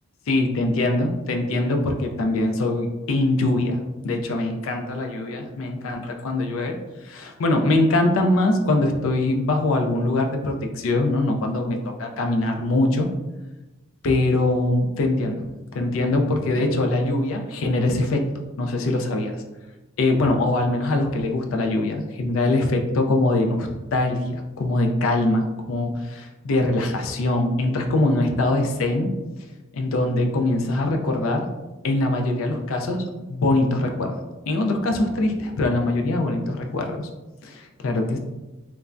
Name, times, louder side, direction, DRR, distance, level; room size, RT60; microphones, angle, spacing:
voice 1, 0.3-3.8 4.0-6.8 7.0-13.1 14.0-15.4 15.7-18.2 18.6-19.4 20.0-29.1 29.7-31.5 31.8-34.2 34.5-37.1 37.4-38.2, left 2 dB, 75° left, 3 dB, 0.4 m, -23 dB
3.2 x 2.1 x 2.4 m, 1.1 s
head